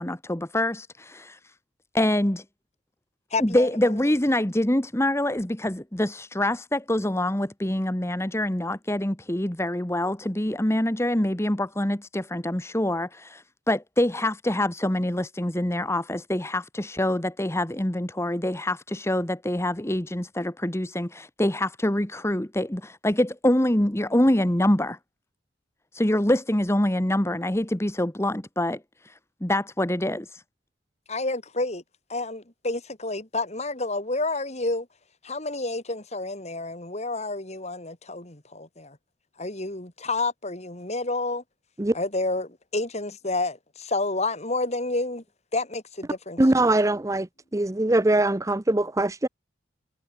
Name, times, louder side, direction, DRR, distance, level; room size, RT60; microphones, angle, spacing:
voice 1, 0.0-1.4 1.9-2.4 3.4-25.0 25.9-28.8 29.0-29.1 29.4-30.4, left 1 dB, 15° left, 1.4 m, -25 dB
voice 2, 3.3-4.0 31.1-31.8 32.1-34.9 35.2-39.0 39.4-41.4 41.9-45.2 45.5-46.7, left 2 dB, 35° left, 3.5 m, -29 dB
voice 3, 46.4-47.3 47.5-49.3, right 2 dB, 15° right, 0.7 m, -22 dB
head